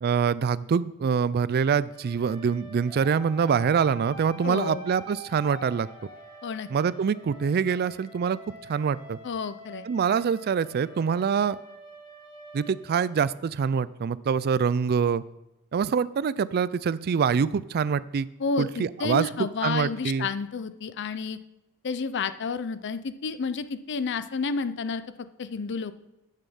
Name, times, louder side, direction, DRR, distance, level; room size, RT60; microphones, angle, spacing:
voice 1, 0.0-5.9 6.7-8.4 8.7-9.2 9.9-11.6 12.5-15.2 15.7-18.3 18.6-20.3, right 6 dB, 45° right, 18 dB, 0.3 m, -25 dB
sound 1, 1.9-13.7, right 1 dB, 20° left, 1.9 m, -47 dB
voice 2, 4.4-4.8 6.4-6.7 9.2-9.9 18.4-21.4 21.8-25.9, left 4 dB, 55° left, 13 dB, 0.5 m, -30 dB
8.4 x 6.6 x 7.0 m, 0.94 s
head